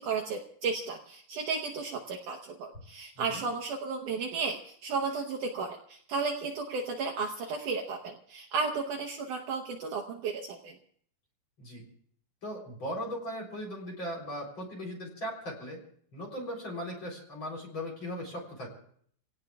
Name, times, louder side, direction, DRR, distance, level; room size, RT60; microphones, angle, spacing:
voice 1, 0.0-10.7, right 4 dB, 85° right, 1 dB, 1.8 m, -34 dB
voice 2, 12.4-15.8 16.1-18.7, equal, 30° left, -2 dB, 3.8 m, -38 dB
28.5 x 17.5 x 2.4 m, 0.62 s
omnidirectional pair, 5.0 m